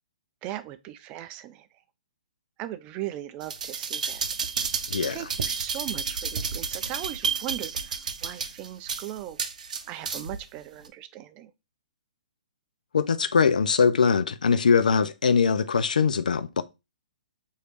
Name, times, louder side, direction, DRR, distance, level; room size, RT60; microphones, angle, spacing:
voice 1, 0.4-1.7 2.6-4.2 5.1-9.4 9.9-11.5, right 13 dB, 25° right, 0.4 m, -38 dB
sound 1, 3.4-10.4 10.9-11.0, right 5 dB, 65° right, 0.6 m, -31 dB
voice 2, 4.9-5.2 12.9-16.6, left 5 dB, 75° left, 0.4 m, -22 dB
3.1 x 2.7 x 4.6 m
hypercardioid pair, 135°, 4 cm